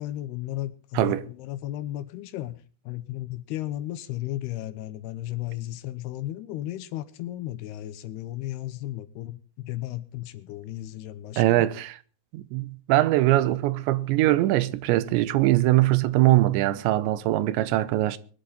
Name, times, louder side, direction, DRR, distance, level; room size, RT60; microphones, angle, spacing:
voice 1, 0.0-11.7, left 14 dB, 75° left, 2.6 m, -34 dB
voice 2, 11.4-11.9 12.3-18.2, right 16 dB, 85° right, 3.1 m, -22 dB
22.0 x 12.0 x 4.0 m
omnidirectional pair, 5.1 m